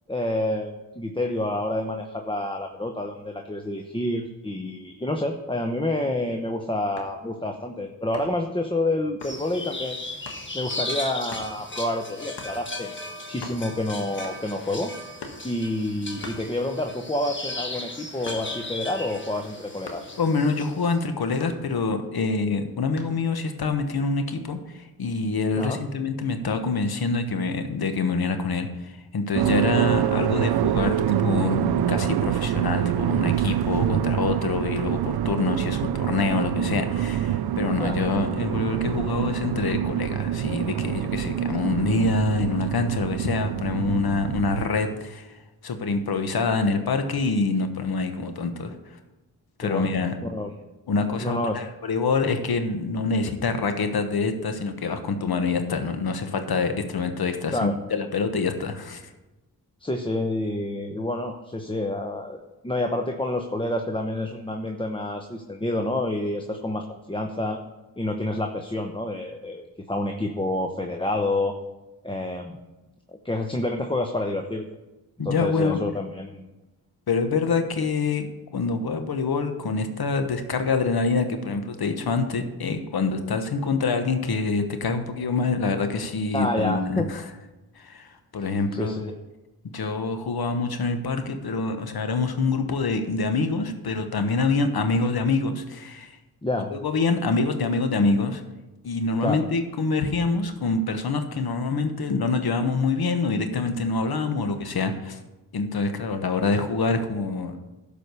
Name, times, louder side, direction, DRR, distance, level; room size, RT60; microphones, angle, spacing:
voice 1, 0.1-10.0 10.5-12.9 13.3-14.9 15.4-20.1 25.6-25.8 37.8-38.0 49.6-49.9 50.2-50.5 51.2-51.6 57.5-57.8 59.8-62.4 62.6-67.6 68.0-71.6 72.0-72.5 73.1-74.6 75.2-76.5 86.3-87.1 88.4-89.1 96.4-96.7 99.2-99.4, left 1 dB, 15° left, 4 dB, 0.9 m, -28 dB
sound 1, 7.0-7.3 8.1-8.5 9.2-9.4 10.3-10.5 11.3-11.5 12.4-12.6 13.0-13.1 13.3-13.9 14.2-14.6 15.2-15.5 16.2-17.0 17.3-18.7 19.8-20.2 21.4-22.1 23.0-23.3, left 4 dB, 85° left, 1.5 m, -42 dB
sound 2, 9.2-20.9, left 2 dB, 30° left, 1.4 m, -36 dB
voice 2, 20.2-48.7 49.6-50.1 50.9-59.1 75.2-75.8 77.1-87.2 87.8-89.1 89.6-96.2 96.7-98.4 98.8-105.2 105.5-107.6, left 4 dB, 70° left, 7 dB, 1.2 m, -26 dB
sound 3, 29.3-44.7, right 11 dB, 75° right, 0.5 m, -26 dB
12.0 x 5.0 x 6.7 m, 1.1 s
cardioid pair, 50°, 39 cm